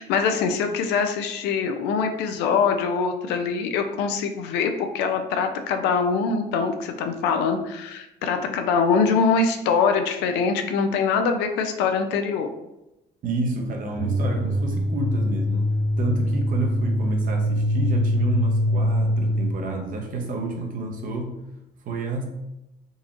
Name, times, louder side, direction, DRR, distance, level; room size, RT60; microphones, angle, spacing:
voice 1, 0.0-12.5, left 5 dB, 90° left, 6 dB, 0.4 m, -23 dB
voice 2, 13.2-15.7 16.0-21.4 21.8-22.2, right 2 dB, 55° right, 2 dB, 0.8 m, -29 dB
sound 1, 13.9-19.6, equal, 50° left, 0.8 m, -23 dB
3.9 x 2.8 x 2.5 m, 0.93 s
cardioid pair, 110°, 17 cm